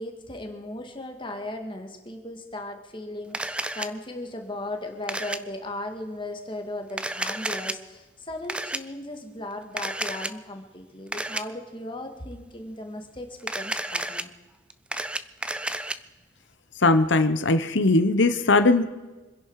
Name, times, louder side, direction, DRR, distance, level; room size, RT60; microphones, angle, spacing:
voice 1, 0.0-14.3, left 1 dB, 25° left, 4 dB, 1.9 m, -37 dB
Camera, 3.3-3.9 5.1-5.4 6.9-7.7 8.5-8.8 9.8-10.3 11.1-11.4 13.4-14.2 14.7-16.0, right 1 dB, 5° right, 0.4 m, -31 dB
voice 2, 16.8-18.9, left 2 dB, 65° left, 9 dB, 1.0 m, -19 dB
26.0 x 10.5 x 4.8 m, 1.2 s
head